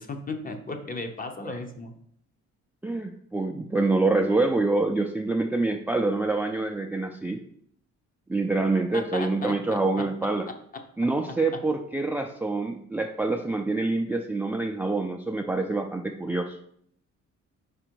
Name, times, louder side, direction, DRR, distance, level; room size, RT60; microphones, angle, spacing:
voice 1, 0.0-1.9 8.9-10.0, left 3 dB, 30° left, 6 dB, 0.9 m, -35 dB
voice 2, 2.8-7.4 8.3-10.4 11.0-16.6, right 3 dB, 5° right, 4 dB, 0.4 m, -26 dB
5.0 x 4.4 x 4.6 m, 0.67 s
cardioid pair, 90°, 30 cm